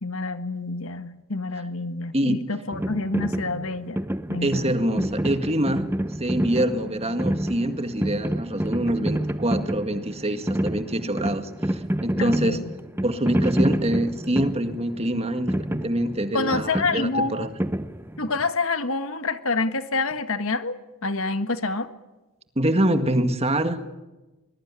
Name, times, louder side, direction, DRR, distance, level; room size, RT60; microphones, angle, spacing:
voice 1, 0.0-4.0 4.3-4.7 12.2-12.6 16.3-17.4 18.2-21.9, left 3 dB, 65° left, 10 dB, 1.7 m, -27 dB
voice 2, 2.1-2.4 4.4-5.9 6.2-12.6 13.0-17.5 22.6-23.8, right 1 dB, 30° right, 8 dB, 1.9 m, -25 dB
sound 1, 2.7-18.5, right 1 dB, 10° right, 0.8 m, -29 dB
23.5 x 21.5 x 9.8 m, 1.1 s
head